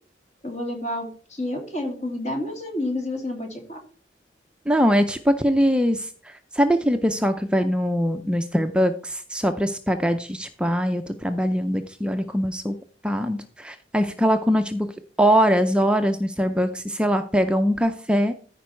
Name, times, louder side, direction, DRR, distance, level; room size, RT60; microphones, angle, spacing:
voice 1, 0.4-3.8, left 1 dB, 40° left, 2 dB, 2.8 m, -29 dB
voice 2, 4.7-12.8 13.0-14.9 15.2-18.3, equal, 5° right, 7 dB, 0.5 m, -22 dB
14.0 x 5.2 x 4.5 m, 0.44 s
head